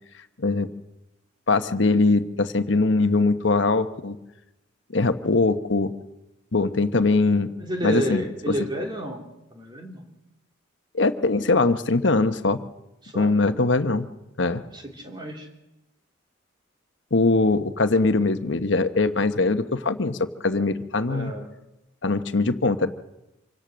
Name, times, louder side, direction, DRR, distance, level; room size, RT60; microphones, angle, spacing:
voice 1, 1.5-4.2 4.9-5.9 6.5-7.5 7.8-8.5 10.9-12.6 13.1-14.1 14.4-14.6 17.1-20.2 20.4-21.3 22.0-22.9, left 3 dB, 70° left, 9 dB, 1.1 m, -21 dB
voice 2, 7.6-9.3 9.5-10.0 13.0-13.3 14.7-15.5 21.1-21.5, equal, 25° right, 2 dB, 2.9 m, -31 dB
26.5 x 17.5 x 6.3 m, 0.94 s
head